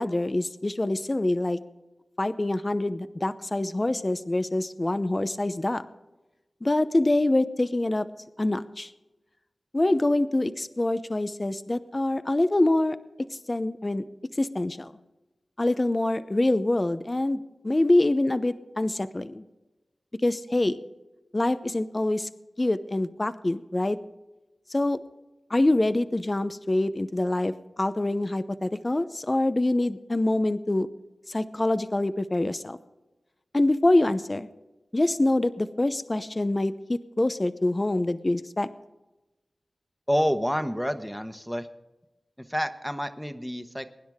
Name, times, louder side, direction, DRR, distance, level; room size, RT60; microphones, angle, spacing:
voice 1, 0.0-1.6 2.2-5.8 6.6-8.1 8.4-8.9 9.7-14.0 14.4-14.9 15.6-19.4 20.2-20.8 21.3-22.3 22.6-24.0 24.7-25.0 25.5-27.5 27.8-30.9 31.3-32.8 33.5-34.5 34.9-38.7, left 2 dB, 35° left, 12 dB, 0.7 m, -25 dB
voice 2, 40.1-41.7 42.4-43.9, equal, ahead, 9 dB, 1.2 m, -28 dB
23.0 x 10.0 x 3.6 m, 1.1 s
cardioid pair, 40°, 0 cm